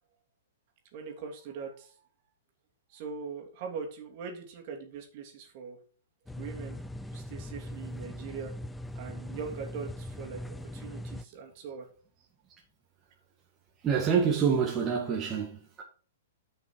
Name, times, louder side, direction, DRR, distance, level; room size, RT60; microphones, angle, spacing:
voice 1, 0.9-1.9 2.9-5.8 6.4-6.8 7.1-8.6 8.9-11.9, right 6 dB, 45° right, 2.9 m, -41 dB
sound 1, 6.3-11.2, left 1 dB, 5° left, 0.5 m, -40 dB
voice 2, 13.8-15.8, right 6 dB, 25° right, 2.0 m, -27 dB
10.5 x 5.9 x 4.7 m
figure-of-eight pair, 110°, 0 cm